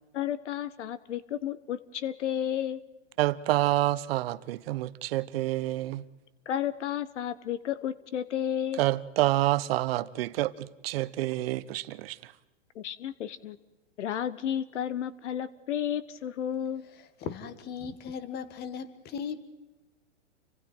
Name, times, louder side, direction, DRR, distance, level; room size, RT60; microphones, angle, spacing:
voice 1, 0.1-2.8 6.5-8.8 12.7-13.6 14.0-16.9, left 10 dB, 70° left, 1.1 m, -32 dB
voice 2, 3.2-6.0 8.8-12.2, right 16 dB, 50° right, 1.1 m, -28 dB
voice 3, 17.0-19.4, left 6 dB, 25° left, 1.8 m, -37 dB
29.5 x 25.0 x 4.5 m
hypercardioid pair, 135°, 37 cm